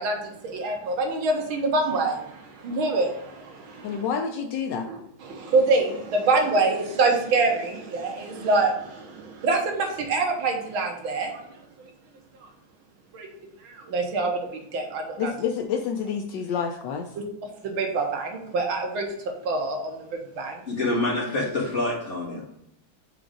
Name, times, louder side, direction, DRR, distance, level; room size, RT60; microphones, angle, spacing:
voice 1, 0.0-4.0 4.8-11.9 13.1-13.3 13.6-15.3 17.6-20.6, right 3 dB, 80° right, 2 dB, 1.9 m, -26 dB
voice 2, 3.8-4.9 15.2-17.1, left 7 dB, 75° left, 4 dB, 1.1 m, -28 dB
voice 3, 20.7-22.6, left 2 dB, 35° left, -5 dB, 2.1 m, -27 dB
5.1 x 3.8 x 4.9 m, 0.75 s
omnidirectional pair, 2.2 m